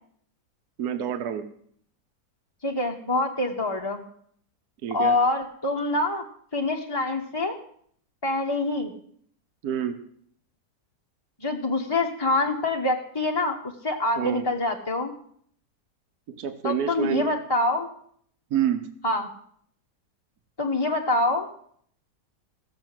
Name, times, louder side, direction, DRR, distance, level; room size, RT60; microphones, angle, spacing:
voice 1, 0.8-1.4 4.8-5.2 9.6-10.0 14.2-14.4 16.3-17.3 18.5-18.8, right 9 dB, 65° right, 7 dB, 1.4 m, -27 dB
voice 2, 2.6-4.0 4.9-6.2 6.5-7.6 8.2-8.9 11.4-13.6 13.8-15.1 16.6-17.9 19.0-19.3 20.6-21.5, left 2 dB, 20° left, 0 dB, 0.8 m, -25 dB
15.5 x 7.2 x 7.6 m, 0.63 s
omnidirectional pair, 1.8 m